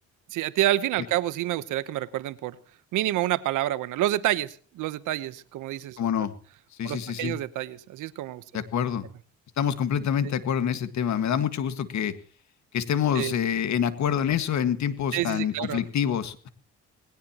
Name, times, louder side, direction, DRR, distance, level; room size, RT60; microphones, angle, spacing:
voice 1, 0.3-2.6 2.9-6.0 6.8-8.4 10.2-10.3 13.1-13.3 15.1-15.8, right 14 dB, 90° right, 16 dB, 1.0 m, -28 dB
voice 2, 6.0-6.3 6.8-7.4 8.5-9.1 9.6-12.1 12.7-16.5, left 8 dB, 65° left, 11 dB, 1.8 m, -26 dB
19.5 x 18.0 x 3.0 m, 0.42 s
cardioid pair, 90°, 30 cm